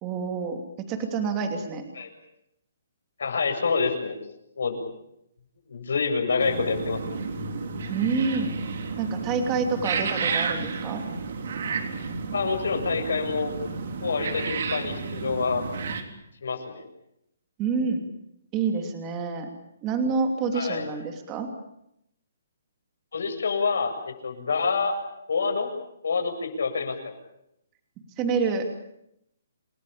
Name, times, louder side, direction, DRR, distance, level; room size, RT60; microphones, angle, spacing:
voice 1, 0.0-1.8 7.9-8.5 9.0-11.0 17.6-18.0 18.5-19.5 19.8-21.5 28.2-28.7, right 5 dB, 15° right, 5 dB, 2.9 m, -27 dB
voice 2, 3.2-4.2 4.6-4.8 5.7-7.0 12.3-13.5 14.0-15.6 16.4-16.8 20.5-21.0 23.1-25.0 25.3-25.7 26.0-27.1, left 5 dB, 70° left, 5 dB, 7.7 m, -27 dB
sound 1, 6.4-16.0, right 4 dB, 45° right, 3.8 m, -31 dB
29.0 x 20.5 x 8.7 m, 0.79 s
hypercardioid pair, 180°, 0 cm